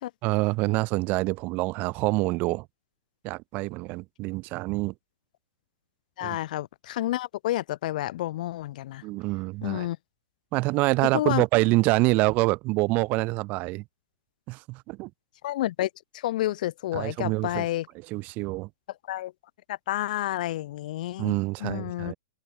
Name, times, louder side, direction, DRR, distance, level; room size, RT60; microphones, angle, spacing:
voice 1, 0.2-2.7 3.2-4.9 6.2-6.4 9.0-9.9 10.5-13.8 14.5-15.1 16.9-17.7 18.1-18.7 21.2-22.1, right 23 dB, 35° right, 0.8 m, -26 dB
voice 2, 6.2-9.0 9.6-10.0 11.1-11.4 15.4-17.9 19.1-19.3 19.7-21.4 21.6-22.1, left 14 dB, 60° left, 0.4 m, -30 dB
hypercardioid pair, 135°, 5 cm